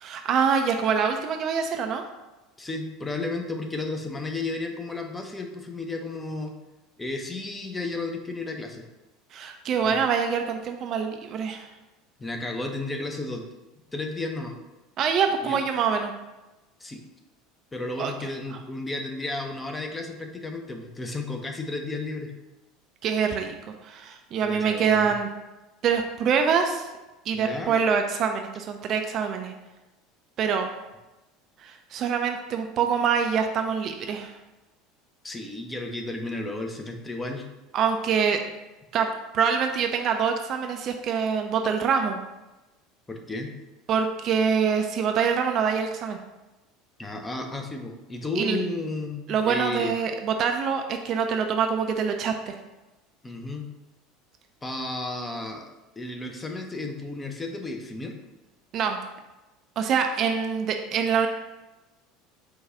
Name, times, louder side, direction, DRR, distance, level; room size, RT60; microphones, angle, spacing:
voice 1, 0.0-2.0 9.3-11.7 15.0-16.1 18.0-18.1 18.5-18.6 23.0-25.3 25.8-26.9 27.3-29.5 30.4-30.7 31.6-34.3 37.7-38.4 38.9-39.1 39.3-42.2 43.9-46.2 48.4-48.7 49.3-52.5 58.7-59.0 59.8-61.3, right 6 dB, 40° right, 5 dB, 0.3 m, -25 dB
voice 2, 2.6-6.5 7.0-8.8 9.8-10.0 12.2-13.5 13.9-14.5 15.4-15.6 16.8-17.0 17.7-22.3 24.4-25.1 27.3-27.8 35.2-37.5 43.1-43.5 47.0-49.9 53.2-53.7 54.6-55.7 56.0-58.1, left 2 dB, 15° left, 3 dB, 0.6 m, -33 dB
4.6 x 2.3 x 3.7 m, 1.0 s
figure-of-eight pair, 70°, 0 cm